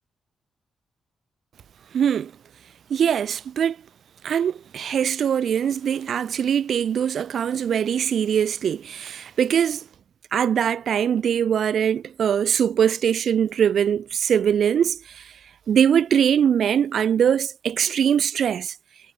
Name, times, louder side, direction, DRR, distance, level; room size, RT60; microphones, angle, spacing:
voice 1, 1.9-2.3 2.9-3.8 4.2-9.8 10.3-15.3 15.7-18.7, right 8 dB, 70° right, 0.6 m, -22 dB
cardioid pair, 65°, 0 cm